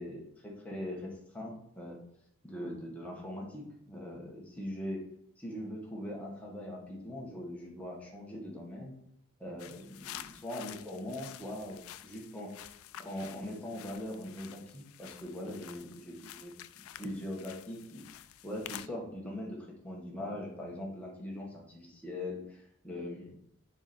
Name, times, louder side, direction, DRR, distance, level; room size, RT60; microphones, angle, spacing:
voice 1, 0.0-2.0 2.4-5.0 5.4-8.9 9.4-12.5 13.0-16.5 17.0-18.0 18.4-23.4, left 1 dB, 5° left, -3 dB, 1.4 m, -41 dB
sound 1, 9.6-18.9, left 12 dB, 65° left, 0.3 m, -49 dB
7.2 x 5.0 x 4.2 m, 0.73 s
head